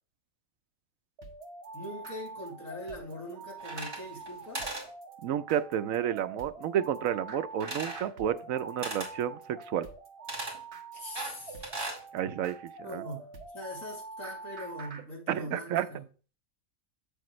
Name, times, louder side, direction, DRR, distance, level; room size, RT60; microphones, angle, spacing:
sound 1, 1.2-15.0, right 4 dB, 55° right, 1.4 m, -45 dB
voice 1, 1.7-4.6 10.9-11.7 12.8-16.0, left 1 dB, 75° left, 3.0 m, -42 dB
sound 2, 3.6-4.3 4.5-4.9 7.6-8.1 8.8-9.1 10.3-10.6 11.2-12.0, right 2 dB, 20° right, 2.4 m, -37 dB
voice 2, 5.2-9.9 12.1-13.0 15.3-15.9, right 10 dB, 80° right, 1.0 m, -31 dB
8.4 x 6.9 x 3.1 m
omnidirectional pair, 1.4 m